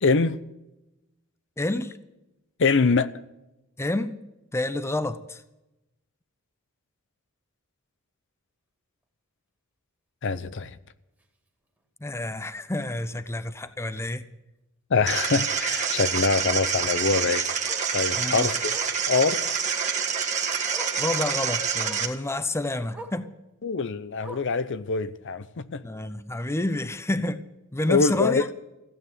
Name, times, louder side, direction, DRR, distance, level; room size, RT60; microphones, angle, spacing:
voice 1, 0.0-0.4 2.6-3.1 10.2-10.8 14.9-17.5 17.9-18.5 19.1-19.4 23.6-25.8 27.9-28.5, left 4 dB, 55° left, 0.6 m, -24 dB
voice 2, 1.6-2.0 3.8-4.2 4.5-5.4 12.0-14.3 18.1-18.5 20.9-23.3 25.8-27.4 27.7-28.5, left 2 dB, 10° left, 0.6 m, -29 dB
Bark, 11.2-11.4 11.8-11.9 12.2-12.3 12.6-12.7 14.1-14.2 16.7-16.8 17.6-17.9 18.7-19.0 20.2-20.3 20.7-21.0 21.8-22.1 22.9-23.2 24.2-24.6 25.6-25.7, equal, 10° right, 2.1 m, -43 dB
sound 1, 15.1-22.1, right 6 dB, 35° right, 1.6 m, -27 dB
15.5 x 9.2 x 9.6 m
head